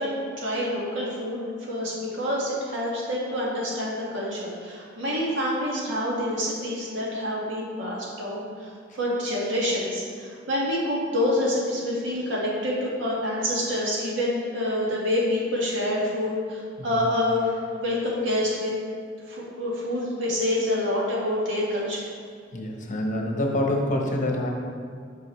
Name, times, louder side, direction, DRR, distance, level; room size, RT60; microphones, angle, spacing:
voice 1, 0.0-18.7 19.3-22.0, left 1 dB, 80° right, -5 dB, 1.7 m, -27 dB
voice 2, 22.5-24.5, left 1 dB, 45° left, 1 dB, 0.9 m, -26 dB
8.4 x 5.4 x 3.1 m, 2.2 s
head